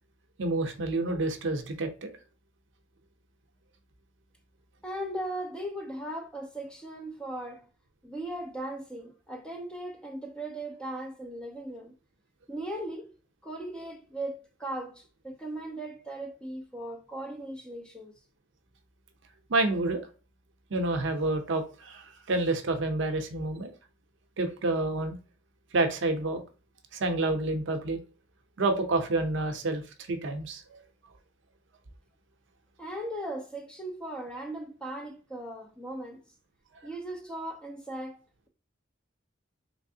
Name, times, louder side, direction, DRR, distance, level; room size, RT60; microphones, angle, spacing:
voice 1, 0.4-2.1 19.5-20.0 20.7-23.7 24.4-25.2 25.7-26.4 26.9-28.0 28.6-29.8 30.1-30.8, right 2 dB, 65° right, 0.6 m, -28 dB
voice 2, 4.8-7.7 8.0-12.0 12.5-13.1 13.4-18.1 32.8-36.2 36.8-38.2, right 1 dB, 5° left, 0.5 m, -38 dB
3.3 x 3.2 x 2.7 m
head